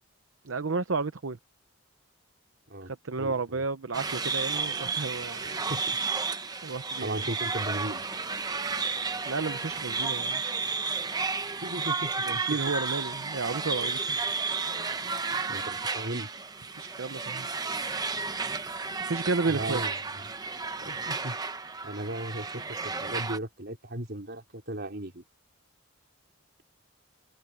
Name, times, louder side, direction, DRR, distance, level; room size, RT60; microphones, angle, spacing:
voice 1, 0.4-1.4 2.9-5.7 6.6-7.2 9.2-10.4 12.2-14.2 16.7-17.5 19.1-19.8, right 4 dB, 70° right, 0.8 m, -32 dB
voice 2, 3.2-3.6 5.7-6.0 7.0-8.0 11.6-12.2 15.5-16.3 19.5-20.0 20.8-21.4 21.8-25.2, right 1 dB, 50° right, 4.0 m, -36 dB
sound 1, 3.9-23.4, right 4 dB, 20° right, 0.9 m, -32 dB
open air
head